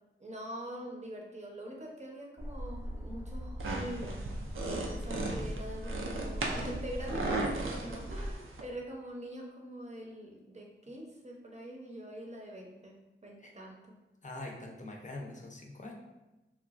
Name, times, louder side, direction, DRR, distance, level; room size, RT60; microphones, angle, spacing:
voice 1, 0.2-4.2 4.6-13.0 13.2-14.0, right 1 dB, 35° right, -1 dB, 0.7 m, -44 dB
sound 1, 2.4-8.3, equal, 10° right, 0.3 m, -40 dB
sound 2, 3.6-8.6, right 2 dB, 85° right, 0.4 m, -36 dB
voice 2, 14.2-16.0, left 2 dB, 40° left, 0 dB, 0.6 m, -43 dB
3.0 x 2.2 x 2.4 m, 1.0 s
cardioid pair, 50°, 20 cm